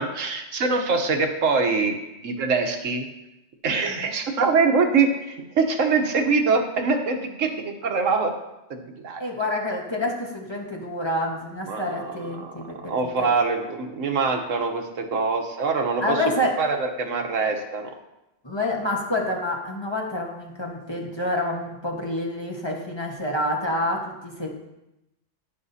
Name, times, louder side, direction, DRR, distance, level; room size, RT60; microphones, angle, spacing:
voice 1, 0.0-2.0 2.2-3.1 3.6-8.3 8.7-9.2 11.7-16.2 16.6-17.9, right 4 dB, 80° right, 4 dB, 1.3 m, -24 dB
voice 2, 3.8-4.1 9.2-12.9 16.0-16.5 18.4-24.5, left 1 dB, 20° left, -1 dB, 1.3 m, -28 dB
11.0 x 10.5 x 2.7 m, 0.93 s
omnidirectional pair, 1.3 m